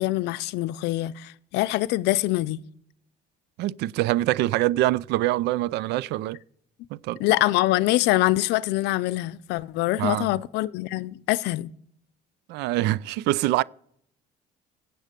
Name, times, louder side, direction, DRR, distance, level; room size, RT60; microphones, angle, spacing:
voice 1, 0.0-2.6 7.2-11.7, left 17 dB, 90° left, 0.5 m, -24 dB
voice 2, 3.6-6.4 6.9-7.2 10.0-10.3 12.5-13.6, right 16 dB, 85° right, 0.4 m, -24 dB
16.5 x 7.8 x 5.1 m
cardioid pair, 110°, 17 cm